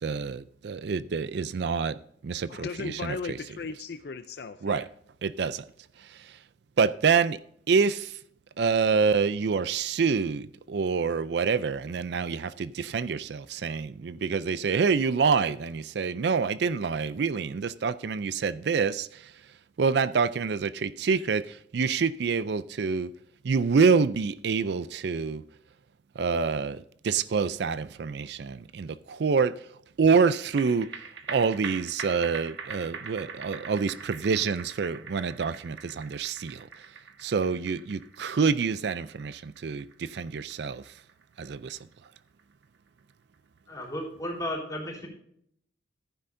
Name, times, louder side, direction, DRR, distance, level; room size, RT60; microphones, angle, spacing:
voice 1, 0.0-2.0 2.2-3.4 4.6-4.9 5.2-5.6 6.0-6.4 6.8-7.4 7.7-8.2 8.6-19.3 19.8-23.1 23.4-25.4 26.2-29.7 30.0-30.9 31.3-36.9 37.2-40.9 41.4-41.8, right 5 dB, 60° right, 0.4 m, -27 dB
voice 2, 2.5-4.9, left 5 dB, 55° left, 0.5 m, -37 dB
sound 1, 30.3-43.0 43.3-43.4, right 5 dB, 75° right, 1.2 m, -43 dB
voice 3, 43.7-45.1, left 1 dB, 20° left, 3.9 m, -34 dB
14.5 x 9.9 x 2.6 m
head